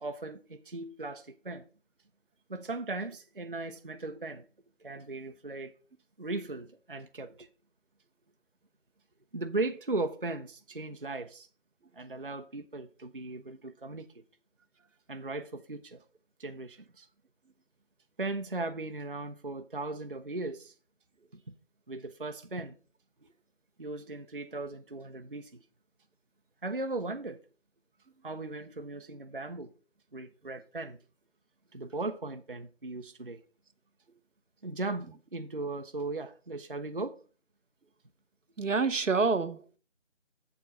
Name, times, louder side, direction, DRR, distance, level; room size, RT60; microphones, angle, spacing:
voice 1, 0.0-1.7 2.5-4.4 4.8-5.7 6.2-7.5 9.3-11.5 11.9-14.2 15.1-16.0 16.4-17.1 18.2-20.7 21.5-21.6 21.9-22.7 23.8-25.6 26.6-27.4 28.2-29.7 30.1-31.0 31.7-33.4 34.6-37.2, right 2 dB, 45° right, 0.5 m, -37 dB
voice 2, 38.6-39.8, right 4 dB, 80° right, 0.9 m, -27 dB
7.4 x 4.7 x 5.4 m
figure-of-eight pair, 170°, 37 cm